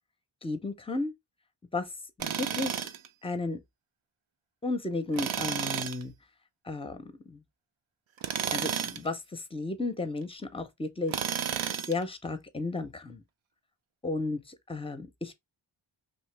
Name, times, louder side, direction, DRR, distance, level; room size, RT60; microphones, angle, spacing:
voice 1, 0.4-1.1 1.7-1.9 2.2-2.9 3.2-3.6 4.6-6.1 6.6-7.4 8.5-11.2 11.9-13.2 14.0-15.3, left 2 dB, 10° left, 0.5 m, -33 dB
Tools, 2.2-3.1 5.1-6.0 8.2-9.1 11.1-12.0, right 8 dB, 75° right, 0.5 m, -32 dB
2.8 x 2.7 x 3.2 m
wide cardioid pair, 60°, 49 cm